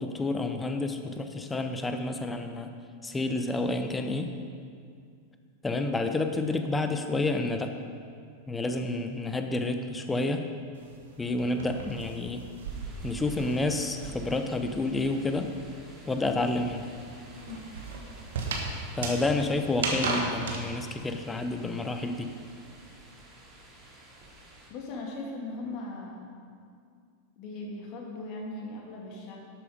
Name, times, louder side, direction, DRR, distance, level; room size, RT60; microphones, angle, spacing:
voice 1, 0.0-2.7 3.0-4.3 5.6-7.7 8.5-10.5 11.2-12.4 13.0-15.5 16.1-16.9 19.0-22.3, left 2 dB, 10° left, 7 dB, 0.9 m, -29 dB
sound 1, 10.8-14.5 14.8-20.6, right 3 dB, 60° right, 1.5 m, -35 dB
sound 2, 12.7-24.7, right 1 dB, 20° right, 2.7 m, -51 dB
voice 2, 17.3-17.7 24.7-26.3 27.4-29.4, left 2 dB, 40° left, -1 dB, 2.4 m, -39 dB
12.0 x 8.5 x 5.2 m, 2.2 s
figure-of-eight pair, 90°, 0 cm